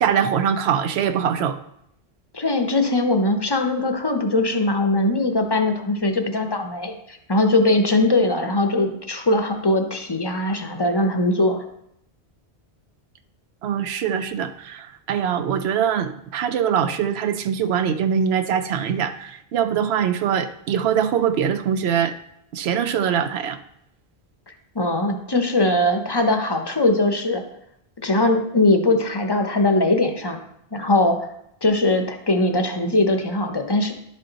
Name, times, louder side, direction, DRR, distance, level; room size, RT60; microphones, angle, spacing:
voice 1, 0.0-1.6 13.6-22.2 22.5-23.6, right 8 dB, 75° right, 9 dB, 0.8 m, -23 dB
voice 2, 2.3-11.6 24.7-27.4 28.0-30.4 30.7-31.3 31.6-33.9, left 2 dB, 30° left, 5 dB, 0.6 m, -21 dB
11.0 x 4.1 x 3.9 m, 0.76 s
omnidirectional pair, 1.1 m